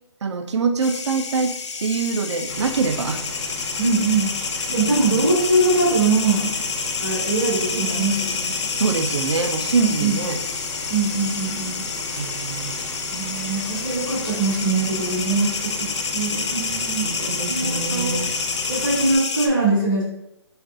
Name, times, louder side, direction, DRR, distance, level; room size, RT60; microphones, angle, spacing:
voice 1, 0.2-1.5 1.8-3.2 4.7-5.3 8.8-10.4 12.2-12.7 17.0-18.3, right 5 dB, 80° right, 7 dB, 0.4 m, -24 dB
sound 1, 0.8-19.5, left 5 dB, 85° left, 0.5 m, -28 dB
sound 2, 2.5-19.2, left 1 dB, 65° left, 1.1 m, -36 dB
voice 2, 3.8-4.3 4.7-6.5 7.0-8.5 9.7-10.2 10.9-11.8 13.0-18.2 18.7-20.0, right 3 dB, ahead, -28 dB, 0.3 m, -22 dB
2.5 x 2.3 x 3.7 m, 0.85 s
hypercardioid pair, 180°, 14 cm